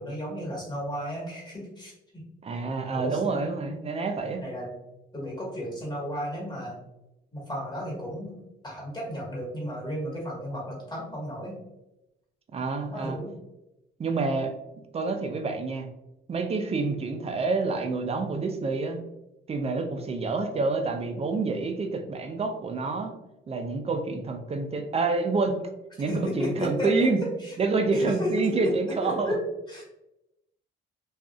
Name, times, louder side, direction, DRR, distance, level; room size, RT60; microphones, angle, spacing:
voice 1, 0.0-2.2 2.9-3.2 4.4-4.7 5.1-6.8 7.3-8.4 8.6-11.6 12.9-13.3 26.1-27.6 27.9-29.8, equal, 20° left, -4 dB, 1.4 m, -33 dB
voice 2, 2.4-4.4 12.5-13.2 14.0-14.6 14.9-15.9 16.3-19.0 19.5-23.1 23.5-25.6 26.0-27.2 27.6-29.3, right 3 dB, 30° right, 5 dB, 0.5 m, -28 dB
2.6 x 2.4 x 2.3 m, 0.91 s
cardioid pair, 90°, 20 cm